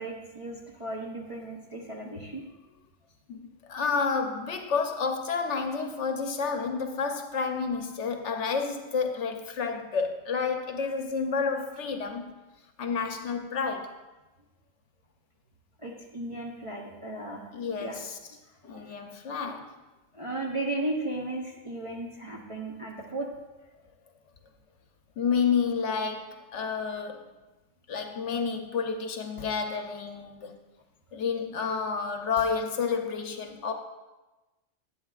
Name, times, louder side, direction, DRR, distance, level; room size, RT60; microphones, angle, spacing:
voice 1, 0.0-2.4 15.8-17.5 17.8-18.0 20.1-23.3, right 2 dB, 30° right, -3 dB, 0.7 m, -35 dB
voice 2, 3.3-12.3 12.8-14.0 17.5-18.2 18.6-19.7 25.2-27.3 27.9-30.5 31.1-33.7, left 5 dB, 65° left, 5 dB, 1.0 m, -30 dB
11.5 x 8.8 x 2.4 m, 1.1 s
omnidirectional pair, 1.4 m